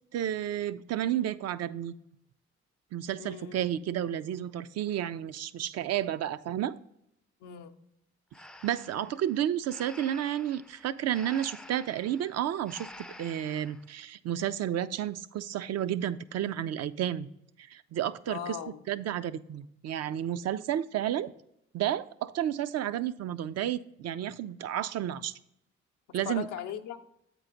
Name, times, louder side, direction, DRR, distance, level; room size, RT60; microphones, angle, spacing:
voice 1, 0.1-1.9 2.9-6.7 8.6-17.3 17.6-18.6 18.9-21.3 21.7-25.3 26.1-26.5, right 11 dB, 60° right, 15 dB, 0.5 m, -31 dB
voice 2, 3.2-3.6 7.4-7.7 18.3-18.8 26.3-27.0, left 9 dB, 90° left, 6 dB, 0.6 m, -38 dB
Breathing, 8.3-13.9, left 1 dB, ahead, 0.4 m, -50 dB
8.3 x 4.6 x 3.8 m, 0.79 s
supercardioid pair, 55°, 30 cm